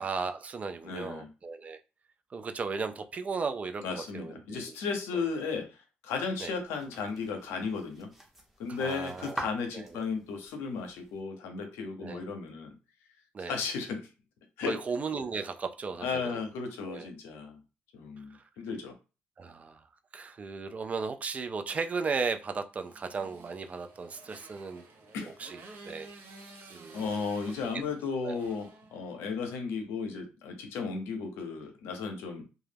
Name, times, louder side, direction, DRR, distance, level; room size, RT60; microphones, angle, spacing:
voice 1, 0.0-1.8 2.3-4.8 5.1-5.2 6.4-6.5 8.7-9.4 9.7-10.0 12.0-12.2 13.3-13.6 14.7-16.4 16.9-17.1 19.4-19.8 20.1-24.8 25.2-26.1 26.7-27.1 28.2-28.4, right 4 dB, 35° right, 8 dB, 0.3 m, -36 dB
voice 2, 0.8-1.3 3.8-8.1 8.6-12.7 13.4-14.1 14.6-14.8 16.0-17.6 17.9-19.0 25.1-25.4 26.9-32.4, left 5 dB, 90° left, 5 dB, 0.6 m, -35 dB
sound 1, 6.1-11.2, right 1 dB, 5° right, 0.7 m, -46 dB
Motorcycle, 22.8-29.5, right 3 dB, 60° right, 0.7 m, -52 dB
2.2 x 2.0 x 3.2 m, 0.31 s
cardioid pair, 85°, 4 cm